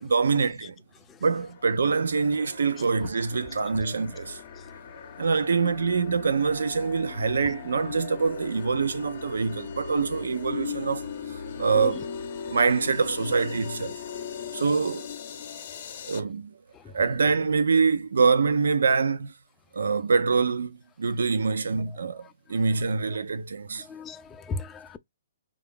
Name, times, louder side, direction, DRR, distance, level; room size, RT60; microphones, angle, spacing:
voice 1, 0.0-0.7 1.2-4.4 5.2-12.1 12.5-14.0 14.5-15.1 16.0-16.6 16.9-19.3 19.7-23.9, right 5 dB, 85° right, 0.5 m, -25 dB
sound 1, 1.3-16.2, left 7 dB, 50° left, 0.6 m, -39 dB
voice 2, 21.9-22.8 23.1-23.2 23.8-25.0, left 4 dB, 15° left, 0.3 m, -39 dB
3.4 x 2.4 x 3.6 m
hypercardioid pair, 150°, 0 cm